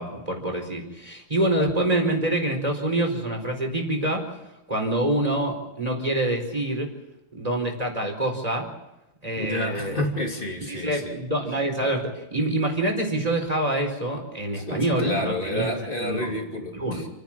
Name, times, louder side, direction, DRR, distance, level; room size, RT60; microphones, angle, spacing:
voice 1, 0.0-4.3 4.7-6.9 7.3-8.7 9.2-10.0 10.7-16.4 16.7-17.0, right 1 dB, 15° right, 2 dB, 4.5 m, -26 dB
voice 2, 9.3-11.2 14.5-17.1, left 1 dB, 25° left, 1 dB, 3.1 m, -30 dB
29.5 x 10.5 x 8.8 m, 0.96 s
omnidirectional pair, 2.3 m